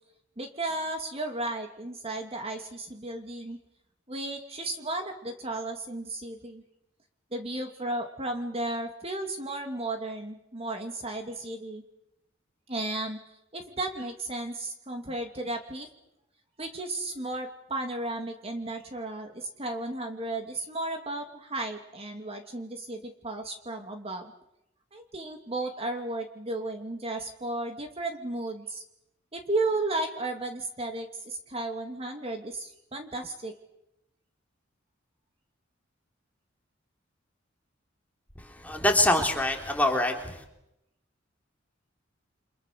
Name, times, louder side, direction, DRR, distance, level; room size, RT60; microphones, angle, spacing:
voice 1, 0.4-3.6 4.1-6.6 7.3-11.8 12.7-13.2 13.5-15.9 16.6-24.3 24.9-28.8 29.3-33.5, right 2 dB, 30° right, 4 dB, 2.7 m, -34 dB
voice 2, 38.4-40.4, left 1 dB, 10° left, 2 dB, 3.6 m, -25 dB
29.5 x 26.5 x 6.9 m, 0.84 s
head